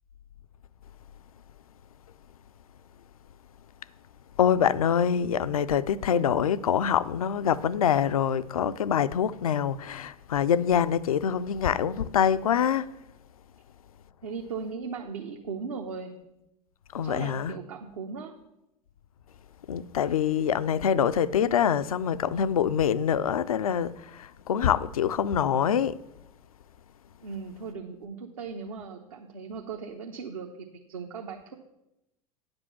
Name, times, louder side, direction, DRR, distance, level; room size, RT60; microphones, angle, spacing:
voice 1, 4.4-12.9 16.9-17.5 19.7-26.0, left 8 dB, 75° left, 0.4 m, -25 dB
voice 2, 14.2-16.1 17.0-18.3 27.2-31.5, right 5 dB, 70° right, 0.8 m, -38 dB
9.4 x 5.3 x 7.0 m
figure-of-eight pair, 80°, 18 cm